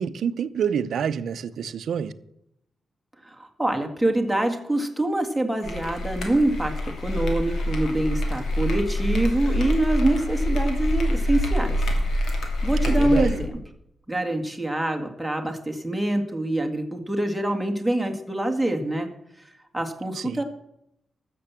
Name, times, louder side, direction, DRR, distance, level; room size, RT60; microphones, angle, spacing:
voice 1, 0.0-2.1 12.8-13.4 20.1-20.4, right 7 dB, 80° right, 0.7 m, -28 dB
voice 2, 3.2-6.7 7.0-11.8 12.6-13.5 14.1-19.1 19.7-20.4, right 1 dB, 5° right, 2.0 m, -25 dB
sound 1, 5.6-13.5, equal, 80° left, 2.9 m, -25 dB
13.5 x 7.0 x 7.5 m
cardioid pair, 105°, 0 cm